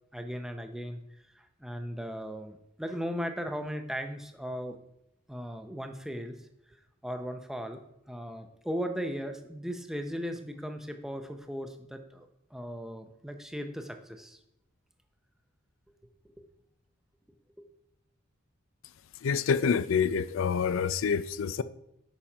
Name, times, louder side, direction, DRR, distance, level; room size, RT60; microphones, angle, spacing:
voice 1, 0.1-1.0 1.3-4.8 5.3-6.8 7.0-14.4 17.6-17.7, equal, ahead, 0.6 m, -37 dB
voice 2, 19.2-21.6, left 6 dB, 75° left, 0.4 m, -27 dB
7.1 x 5.7 x 5.0 m
head